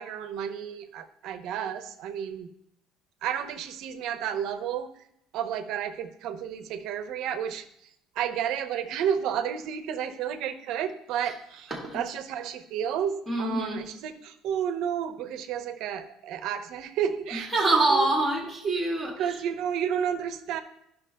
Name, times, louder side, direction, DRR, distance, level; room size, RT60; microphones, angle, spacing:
voice 1, 0.0-2.5 3.2-4.9 5.3-7.6 8.2-17.5 17.9-18.1 19.2-20.6, right 8 dB, 60° right, 8 dB, 0.6 m, -31 dB
voice 2, 11.7-12.0 13.3-13.8 17.3-19.4, right 2 dB, ahead, -3 dB, 1.4 m, -26 dB
12.0 x 5.7 x 2.2 m, 0.75 s
cardioid pair, 155°, 0 cm